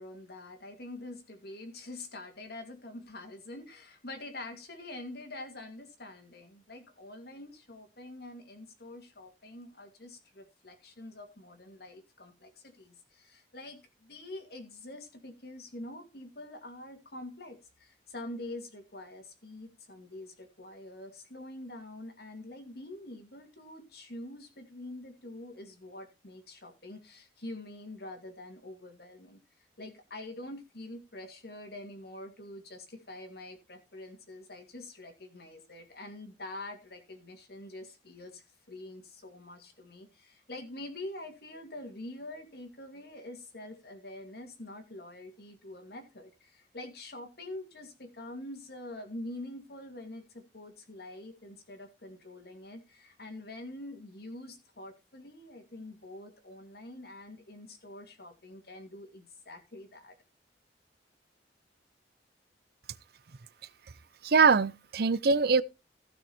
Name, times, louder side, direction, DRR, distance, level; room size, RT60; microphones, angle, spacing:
voice 1, 0.0-29.4 29.8-60.2, left 1 dB, 60° left, 2.5 m, -45 dB
voice 2, 64.2-65.6, right 5 dB, 60° right, 0.6 m, -23 dB
15.5 x 6.1 x 4.3 m
head